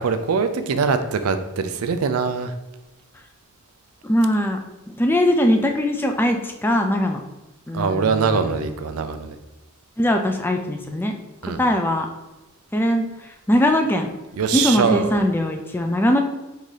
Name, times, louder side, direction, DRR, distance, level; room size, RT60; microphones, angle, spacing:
voice 1, 0.0-2.5 7.7-9.4 11.4-11.6 14.3-15.2, right 5 dB, 90° right, 9 dB, 0.5 m, -22 dB
voice 2, 4.0-4.6 4.9-7.2 7.7-8.7 10.0-11.1 11.6-12.1 12.7-13.1 13.5-14.1 14.5-16.2, left 1 dB, 10° left, 4 dB, 0.4 m, -21 dB
3.8 x 2.7 x 4.8 m, 1.0 s
head